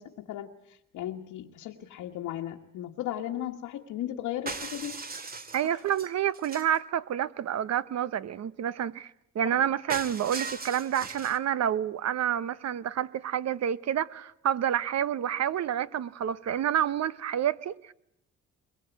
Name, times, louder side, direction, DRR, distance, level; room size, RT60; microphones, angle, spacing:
voice 1, 0.0-5.0 5.6-5.8 9.5-9.6, left 12 dB, 85° left, 1.6 m, -36 dB
sound 1, 4.5-6.8 9.9-11.4, right 4 dB, 30° right, 2.1 m, -38 dB
voice 2, 5.5-17.9, right 10 dB, 60° right, 1.0 m, -29 dB
22.5 x 22.0 x 8.2 m
cardioid pair, 90°, 30 cm